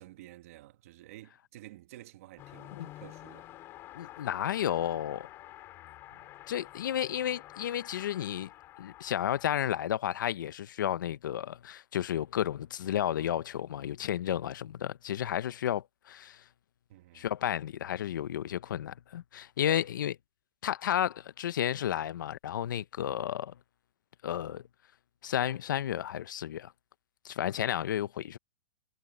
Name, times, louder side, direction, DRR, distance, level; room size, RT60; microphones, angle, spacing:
voice 1, 0.0-3.5 6.1-6.2 16.9-17.3 19.6-19.8, right 15 dB, 45° right, 1.8 m, -51 dB
Car passing by / Accelerating revving vroom, 2.4-9.8, left 15 dB, 25° left, 5.8 m, -49 dB
voice 2, 3.9-5.3 6.5-8.5 8.8-16.4 17.1-20.2 20.6-23.5 24.2-24.6 25.2-26.7 27.2-28.4, left 10 dB, 75° left, 0.8 m, -32 dB
supercardioid pair, 170°, 11 cm